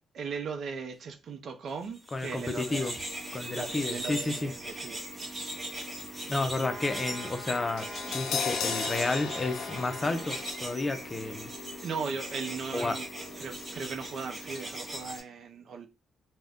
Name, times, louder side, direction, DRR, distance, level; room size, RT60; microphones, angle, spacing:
voice 1, 0.1-3.0 3.5-5.1 11.8-13.1 13.4-15.9, right 5 dB, 60° right, 0.6 m, -38 dB
sound 1, 1.9-15.2, right 1 dB, 20° right, 0.8 m, -39 dB
voice 2, 2.1-2.9 3.3-4.5 6.3-7.9 8.1-11.5 12.7-13.0, left 2 dB, 25° left, 0.6 m, -31 dB
sound 2, 6.6-10.5, equal, 10° left, 1.2 m, -43 dB
Crash cymbal, 7.8-13.9 14.2-14.3, left 7 dB, 80° left, 0.4 m, -38 dB
2.5 x 2.2 x 3.5 m
cardioid pair, 90°, 0 cm